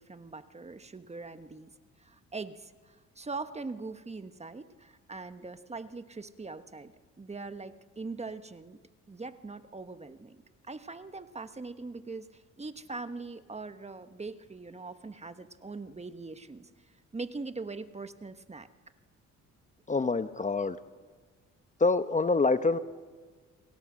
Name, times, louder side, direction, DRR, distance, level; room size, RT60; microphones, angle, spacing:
voice 1, 0.0-1.7 2.0-8.8 9.1-16.7 17.1-18.7, right 3 dB, 20° right, 9 dB, 1.3 m, -42 dB
voice 2, 19.9-20.8 21.8-22.8, left 3 dB, 25° left, 10 dB, 1.0 m, -26 dB
29.5 x 21.0 x 6.4 m, 1.5 s
cardioid pair, 90°, 30 cm